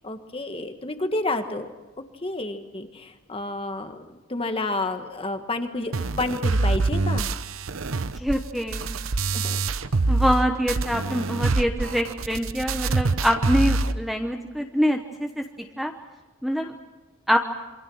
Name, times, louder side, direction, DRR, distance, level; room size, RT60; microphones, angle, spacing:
voice 1, 0.0-1.8 2.2-7.3 9.3-9.6, left 2 dB, 25° left, 7 dB, 1.6 m, -30 dB
sound 1, 5.9-10.4 10.7-13.9, right 3 dB, 70° right, 0.9 m, -25 dB
voice 2, 7.9-8.9 10.1-15.4 15.8-15.9 16.4-16.7 17.3-17.4, equal, ahead, 4 dB, 1.0 m, -25 dB
27.5 x 24.0 x 6.4 m, 1.2 s
head